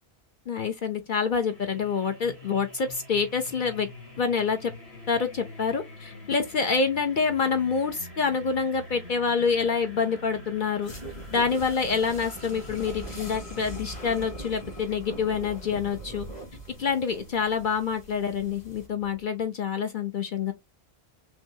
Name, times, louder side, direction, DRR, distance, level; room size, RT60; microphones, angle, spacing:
voice 1, 0.5-3.9 4.2-4.7 5.1-10.9 11.3-16.3 16.8-20.5, left 5 dB, 55° left, 0.8 m, -27 dB
sound 1, 1.3-19.2, left 1 dB, 75° left, 2.7 m, -46 dB
sound 2, 10.8-18.9, right 1 dB, 40° left, 2.1 m, -41 dB
5.9 x 2.3 x 2.7 m
omnidirectional pair, 1.1 m